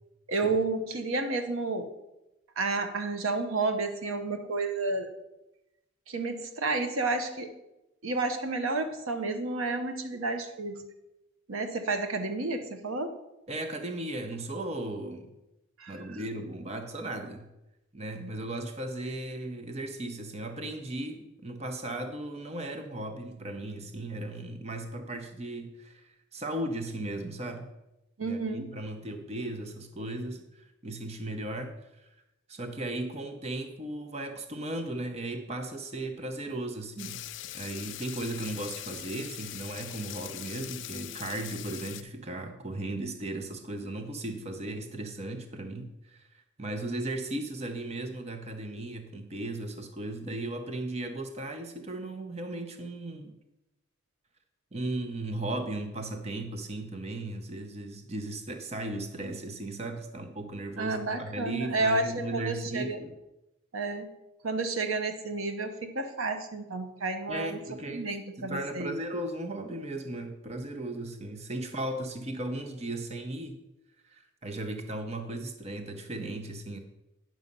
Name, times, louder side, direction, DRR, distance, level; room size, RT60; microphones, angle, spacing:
voice 1, 0.3-1.9 2.6-5.1 6.1-7.5 8.0-10.8 11.5-13.1 15.8-16.0 18.2-18.3 28.2-28.7 60.8-63.0 63.7-64.1 64.4-67.6 67.9-69.0, right 3 dB, 85° right, 7 dB, 0.9 m, -31 dB
voice 2, 13.5-15.3 15.9-17.5 17.9-27.7 28.2-32.1 32.5-37.2 37.5-53.4 54.7-63.1 67.3-68.1 68.4-73.6 74.0-76.8, right 1 dB, 30° right, 6 dB, 0.7 m, -36 dB
sound 1, 37.0-42.0, left 13 dB, 60° left, 0.5 m, -41 dB
9.6 x 6.3 x 5.3 m, 0.94 s
head